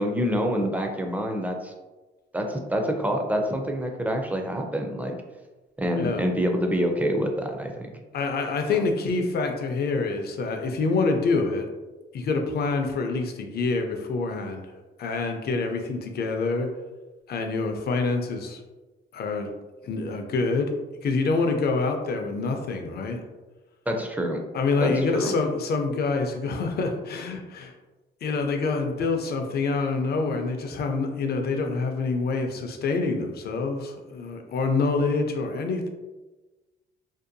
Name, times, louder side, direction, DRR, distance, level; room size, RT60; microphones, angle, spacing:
voice 1, 0.0-1.7 2.3-5.1 5.8-7.9 8.7-8.8 23.9-24.4 24.8-25.3, equal, 10° right, 3 dB, 0.4 m, -26 dB
voice 2, 8.1-11.7 12.1-16.7 17.3-18.6 19.1-19.5 19.8-23.2 24.5-27.7 28.2-35.9, left 3 dB, 55° left, 4 dB, 0.5 m, -26 dB
2.6 x 2.2 x 2.5 m, 1.2 s
cardioid pair, 90°, 20 cm